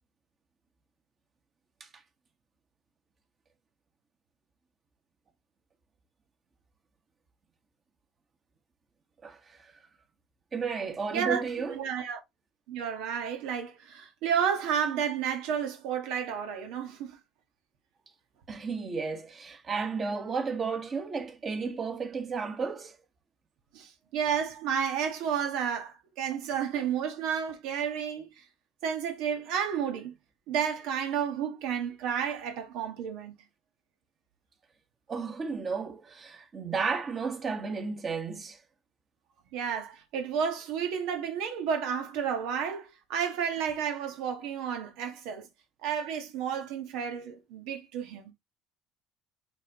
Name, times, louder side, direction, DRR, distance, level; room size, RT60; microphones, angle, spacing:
voice 1, 9.2-9.7 10.5-11.8 18.5-23.0 35.1-38.6, right 5 dB, 30° right, 1.4 m, -33 dB
voice 2, 11.1-12.2 12.7-17.2 23.7-28.3 28.8-30.1 30.5-33.3 39.5-45.5 45.8-48.2, right 7 dB, 80° right, 1.4 m, -31 dB
8.9 x 3.5 x 2.9 m
cardioid pair, 135°, 0 cm